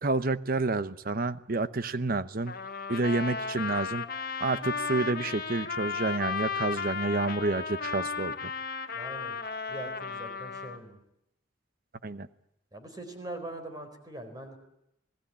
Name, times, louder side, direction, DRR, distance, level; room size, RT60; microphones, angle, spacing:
voice 1, 0.0-2.5 2.9-4.0 4.4-8.5 12.0-12.3, right 3 dB, 45° right, 14 dB, 0.9 m, -29 dB
Trumpet, 2.5-10.8, left 5 dB, 45° left, 1.5 m, -35 dB
voice 2, 8.9-9.4 9.7-11.0 12.7-14.6, right 1 dB, 20° right, 6 dB, 4.4 m, -42 dB
27.5 x 18.5 x 8.7 m, 0.81 s
head